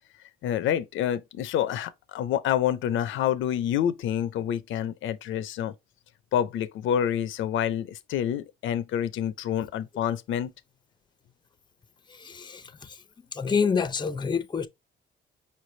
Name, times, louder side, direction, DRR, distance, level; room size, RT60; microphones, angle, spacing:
voice 1, 0.4-5.7 6.3-10.5, left 10 dB, 80° left, 0.5 m, -27 dB
voice 2, 12.1-13.0 13.3-14.7, left 6 dB, 20° left, 0.5 m, -28 dB
5.5 x 3.3 x 2.6 m
cardioid pair, 90°, 20 cm